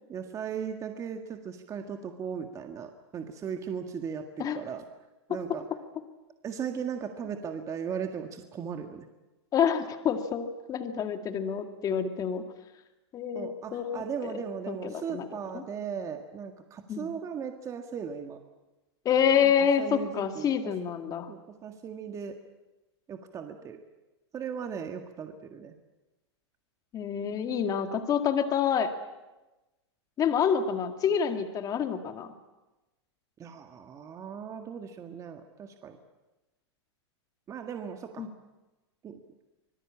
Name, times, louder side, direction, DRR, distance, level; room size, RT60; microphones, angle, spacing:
voice 1, 0.1-4.8 5.3-5.6 6.4-9.1 13.3-18.4 19.4-19.5 19.8-20.8 21.3-22.4 23.1-23.8 24.3-25.7 33.4-36.0 37.5-38.3 39.0-39.2, right 7 dB, 20° right, 6 dB, 1.8 m, -37 dB
voice 2, 9.5-12.4 13.1-14.3 14.7-15.3 15.5-15.6 16.9-17.1 19.1-21.3 26.9-28.9 30.2-32.3 38.2-38.3, left 7 dB, 25° left, 7 dB, 2.2 m, -27 dB
25.5 x 20.5 x 8.7 m, 1.1 s
hypercardioid pair, 135°, 15 cm